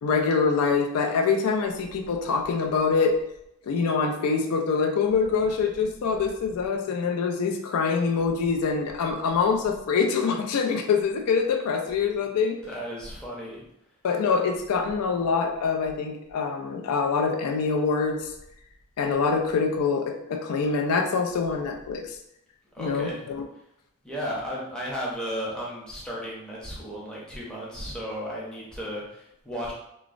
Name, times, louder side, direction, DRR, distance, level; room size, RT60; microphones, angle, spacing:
voice 1, 0.0-3.2 3.7-12.6 14.0-18.3 19.0-22.2 22.8-23.4, left 5 dB, 80° left, 3 dB, 0.4 m, -25 dB
voice 2, 12.6-13.6 22.7-23.2 24.0-29.7, equal, 5° left, -6 dB, 0.6 m, -34 dB
3.0 x 2.0 x 2.4 m, 0.80 s
head